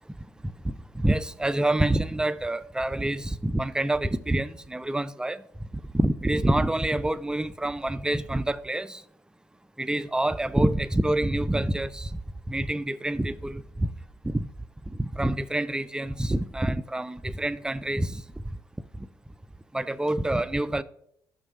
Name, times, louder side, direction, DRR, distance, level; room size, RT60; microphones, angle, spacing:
voice 1, 0.4-5.4 5.9-9.0 9.8-12.2 12.5-13.9 14.2-14.5 14.9-18.2 19.0-19.1 19.7-20.8, right 1 dB, 10° right, 0.4 m, -27 dB
6.3 x 4.5 x 6.2 m
hypercardioid pair, 50°, 9 cm